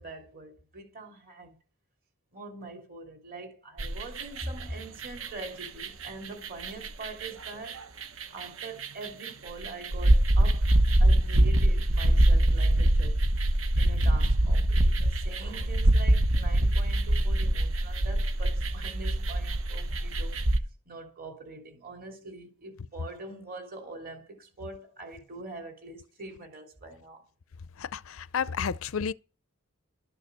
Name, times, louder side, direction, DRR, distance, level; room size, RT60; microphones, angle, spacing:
voice 1, 0.0-1.6 2.3-7.8 8.3-10.7 11.0-13.2 13.7-20.4 20.8-27.3, right 2 dB, 45° right, 3.1 m, -43 dB
sound 1, 3.8-4.6 5.0-20.6, right 1 dB, 65° right, 1.0 m, -24 dB
voice 2, 27.8-29.1, left 6 dB, 65° left, 0.5 m, -31 dB
12.5 x 6.7 x 6.7 m
head